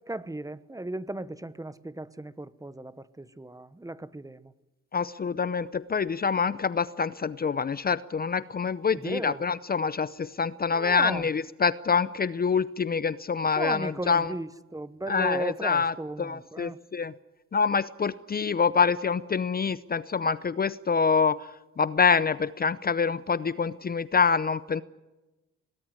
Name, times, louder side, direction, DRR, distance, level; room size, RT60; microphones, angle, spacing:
voice 1, 0.1-4.5 8.9-9.4 10.7-11.3 13.6-16.8, right 1 dB, 10° right, 1.0 m, -36 dB
voice 2, 4.9-14.3 15.1-17.1 17.5-21.5 21.8-24.8, left 5 dB, 30° left, 0.7 m, -26 dB
22.0 x 18.5 x 9.6 m
cardioid pair, 90°, 30 cm